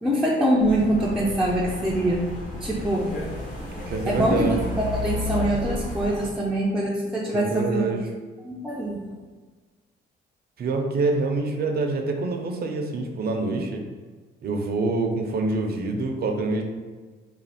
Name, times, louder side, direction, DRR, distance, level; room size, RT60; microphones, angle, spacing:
voice 1, 0.0-2.3 2.6-3.1 4.1-8.0 8.4-9.1, right 1 dB, 5° right, -6 dB, 0.5 m, -24 dB
sound 1, 0.6-6.3, left 1 dB, 40° left, 1.2 m, -32 dB
voice 2, 3.9-4.6 7.3-8.1 10.6-13.8 14.4-16.6, right 3 dB, 50° right, 3 dB, 0.6 m, -26 dB
3.1 x 2.4 x 4.2 m, 1.4 s
cardioid pair, 90°, 20 cm